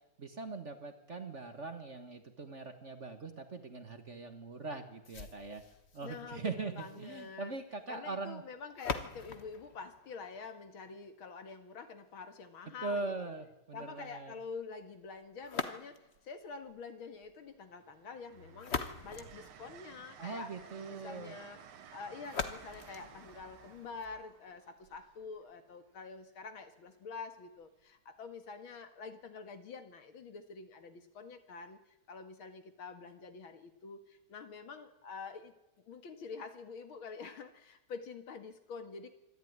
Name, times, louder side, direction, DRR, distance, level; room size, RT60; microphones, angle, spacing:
voice 1, 0.2-5.6 5.9-8.4 12.8-14.3 20.2-21.3, right 3 dB, 35° right, 7 dB, 1.6 m, -41 dB
sound 1, 5.0-11.0 15.4-16.3 18.3-20.2 22.2-24.2, left 5 dB, 35° left, 1.2 m, -43 dB
voice 2, 6.0-7.5 7.9-13.3 13.7-20.5 20.8-21.6 21.9-31.8 32.1-35.5 35.9-39.1, left 5 dB, 70° left, 8 dB, 2.6 m, -47 dB
Train, 14.6-14.8 16.1-16.8 17.2-26.0 27.6-27.8, right 8 dB, 75° right, 2.1 m, -56 dB
25.5 x 12.5 x 9.5 m, 0.93 s
omnidirectional pair, 2.4 m